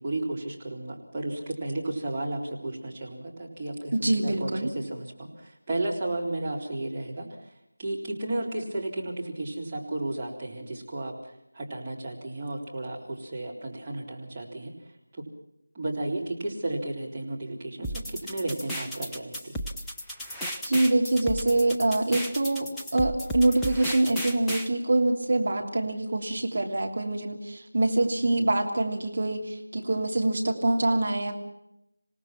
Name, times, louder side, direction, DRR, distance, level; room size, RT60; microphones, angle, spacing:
voice 1, 0.0-4.5 4.7-7.3 7.8-11.2 11.5-14.7 15.2-15.3 15.7-19.6, right 2 dB, 15° right, -6 dB, 3.7 m, -33 dB
voice 2, 3.9-4.7 20.6-31.3, right 2 dB, 40° right, 2 dB, 3.1 m, -25 dB
sound 1, 17.8-24.7, equal, 5° left, 0.7 m, -34 dB
27.0 x 18.0 x 5.9 m, 0.84 s
figure-of-eight pair, 165°, 0 cm